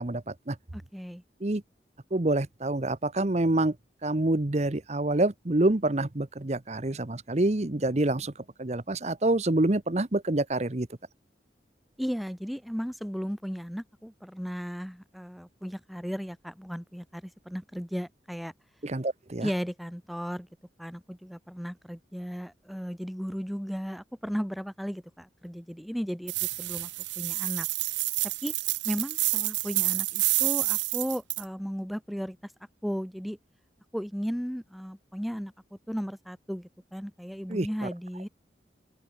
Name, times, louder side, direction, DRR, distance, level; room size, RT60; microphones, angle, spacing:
voice 1, 0.0-0.6 1.4-1.6 2.1-3.8 4.0-8.3 8.6-10.9 18.8-19.5 37.5-37.7, right 2 dB, 40° right, 1.0 m, -27 dB
voice 2, 0.7-1.2 12.0-18.5 19.4-20.5 20.8-26.9 27.2-27.7 28.4-28.5 28.8-32.5 32.8-33.4 33.9-35.5 35.9-38.3, equal, ahead, 1.1 m, -35 dB
sound 1, 26.3-31.4, right 21 dB, 85° right, 0.4 m, -28 dB
open air
head